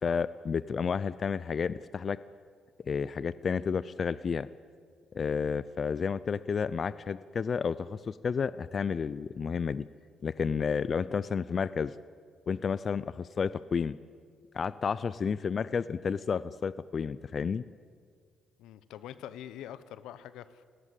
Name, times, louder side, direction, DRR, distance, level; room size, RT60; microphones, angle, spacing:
voice 1, 0.0-2.2 2.9-4.5 5.1-9.8 10.2-11.9 12.5-14.0 14.5-17.6, left 6 dB, 45° left, 0.5 m, -31 dB
voice 2, 18.6-20.6, left 11 dB, 90° left, 1.0 m, -44 dB
27.0 x 18.0 x 8.3 m
cardioid pair, 90°, 0 cm